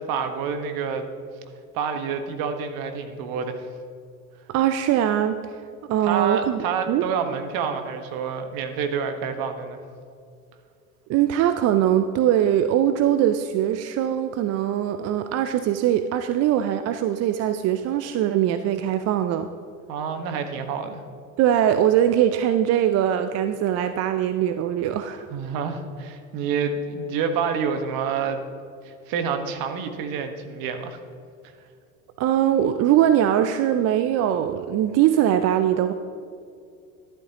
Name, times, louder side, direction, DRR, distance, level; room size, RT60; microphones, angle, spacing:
voice 1, 0.1-1.1 1.7-3.7 6.0-9.8 19.9-21.0 25.3-28.4 28.8-31.0, right 6 dB, 55° right, 7 dB, 1.4 m, -28 dB
voice 2, 4.5-5.6 5.9-7.0 11.1-19.5 21.4-25.3 32.2-35.9, right 11 dB, 40° right, 10 dB, 0.5 m, -21 dB
12.0 x 11.5 x 2.9 m, 2.4 s
hypercardioid pair, 80°, 42 cm